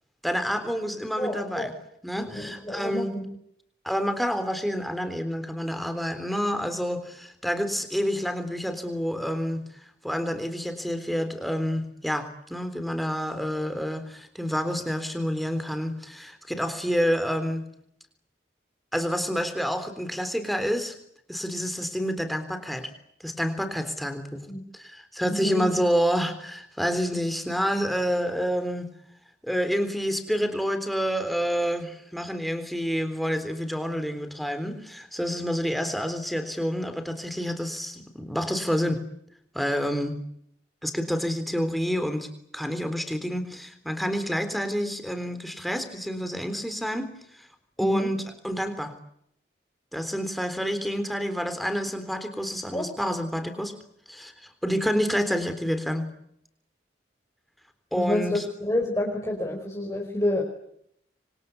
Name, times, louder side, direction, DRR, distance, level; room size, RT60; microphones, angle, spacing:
voice 1, 0.2-1.7 2.0-3.2 3.8-9.6 10.0-17.6 18.9-20.9 21.3-22.9 23.2-24.5 24.7-28.9 29.4-39.0 39.5-40.1 40.8-42.3 42.5-47.1 47.4-47.5 47.8-48.9 49.9-53.7 54.1-56.0 57.9-58.5, equal, ahead, 8 dB, 3.5 m, -28 dB
voice 2, 1.2-1.7 2.2-3.2 24.5-24.6 25.3-25.7 47.8-48.1 52.7-52.9 57.9-60.4, left 1 dB, 15° left, -1 dB, 5.0 m, -28 dB
27.0 x 25.0 x 8.3 m, 0.73 s
head